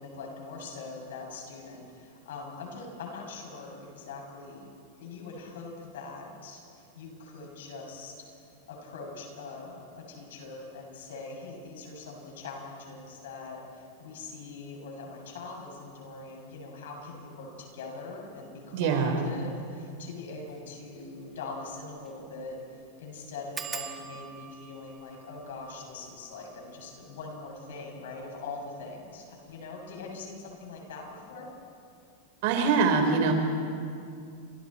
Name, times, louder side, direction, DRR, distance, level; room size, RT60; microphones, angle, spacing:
voice 1, 0.0-4.7 5.0-8.1 8.7-31.5, left 3 dB, 75° left, 0 dB, 7.2 m, -42 dB
voice 2, 18.7-19.3 32.4-33.3, right 5 dB, 60° right, 4 dB, 4.4 m, -24 dB
sound 1, 20.5-20.6 21.0-21.1 21.3-21.4 22.0-22.2 22.5-22.6 23.5-28.8 29.5-30.0 30.3-30.7 30.9-31.0, right 7 dB, 20° right, 2.0 m, -45 dB
29.0 x 26.0 x 4.5 m, 2.4 s
hypercardioid pair, 120°, 0 cm